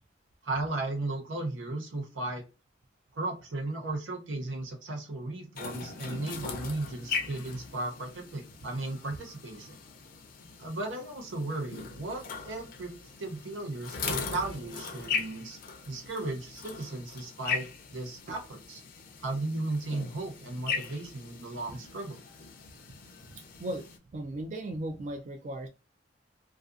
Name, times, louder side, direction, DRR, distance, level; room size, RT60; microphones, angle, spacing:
voice 1, 0.4-2.4 3.1-9.8 10.6-15.6 15.9-17.7 17.9-18.8 19.2-22.2, right 2 dB, 85° right, 3 dB, 0.7 m, -35 dB
sound 1, 5.5-24.0, left 5 dB, 50° left, 0.5 m, -39 dB
voice 2, 23.6-25.7, right 1 dB, 40° right, 5 dB, 0.3 m, -36 dB
2.4 x 2.3 x 2.4 m, 0.30 s
head